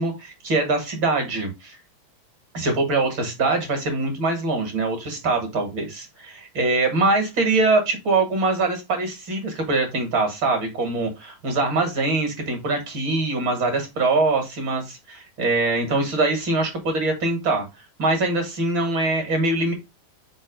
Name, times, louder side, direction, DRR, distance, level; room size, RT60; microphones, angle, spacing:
voice 1, 0.0-1.8 2.5-19.7, right 3 dB, 45° right, 4 dB, 1.9 m, -23 dB
5.5 x 4.0 x 5.1 m, 0.23 s
omnidirectional pair, 3.9 m